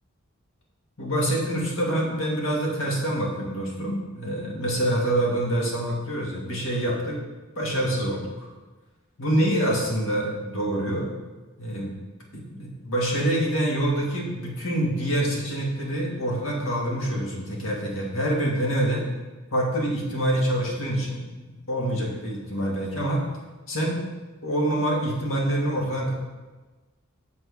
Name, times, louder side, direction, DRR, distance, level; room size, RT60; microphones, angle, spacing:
voice 1, 1.0-7.2 7.6-8.5 9.2-11.1 11.6-11.9 12.3-19.0 19.5-21.2 21.7-23.2 23.7-24.0 24.4-26.1, right 1 dB, 65° left, -2 dB, 2.1 m, -26 dB
7.9 x 6.4 x 4.8 m, 1.2 s
head